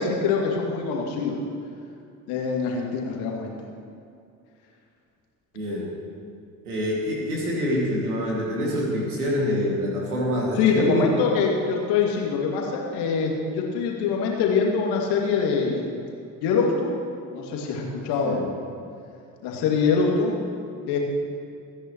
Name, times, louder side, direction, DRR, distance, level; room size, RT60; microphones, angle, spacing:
voice 1, 0.0-1.4 2.3-3.7 10.6-15.9 16.4-16.9 17.3-18.5 19.4-20.4 20.9-21.0, left 5 dB, 65° left, -1 dB, 2.5 m, -24 dB
voice 2, 5.5-5.9 6.6-11.1 18.2-18.4, left 1 dB, 85° right, -4 dB, 2.5 m, -26 dB
28.5 x 9.9 x 3.1 m, 2.5 s
figure-of-eight pair, 50°, 43 cm